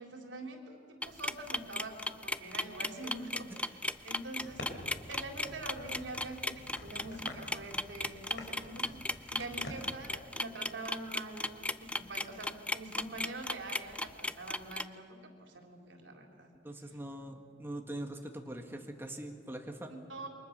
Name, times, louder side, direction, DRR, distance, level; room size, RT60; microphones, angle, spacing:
voice 1, 0.0-4.8 5.1-9.0 9.3-16.5 16.9-17.0 19.9-20.3, right 2 dB, 90° right, 2 dB, 3.8 m, -45 dB
sound 1, 1.0-14.8, left 2 dB, 5° left, 0.6 m, -36 dB
sound 2, 4.4-10.0, left 1 dB, 70° left, 4.5 m, -48 dB
voice 2, 16.6-19.9, right 1 dB, 10° right, 3 dB, 1.7 m, -42 dB
28.5 x 24.0 x 6.7 m, 2.3 s
head